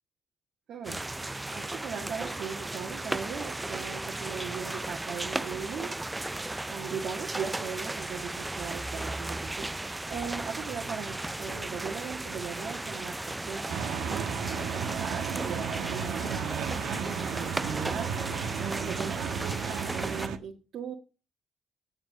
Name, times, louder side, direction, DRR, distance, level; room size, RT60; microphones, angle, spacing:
voice 1, 0.7-6.0 6.7-14.3 14.9-16.7 17.3-18.2 18.6-20.9, right 6 dB, 70° right, -1 dB, 1.8 m, -39 dB
sound 1, 0.8-20.3, right 2 dB, 15° right, 0.4 m, -36 dB
sound 2, 10.1-15.5, right 1 dB, 50° right, 2.5 m, -51 dB
sound 3, 13.7-20.4, right 7 dB, 85° right, 1.3 m, -34 dB
8.8 x 7.6 x 4.9 m, 0.32 s
cardioid pair, 90°, 0 cm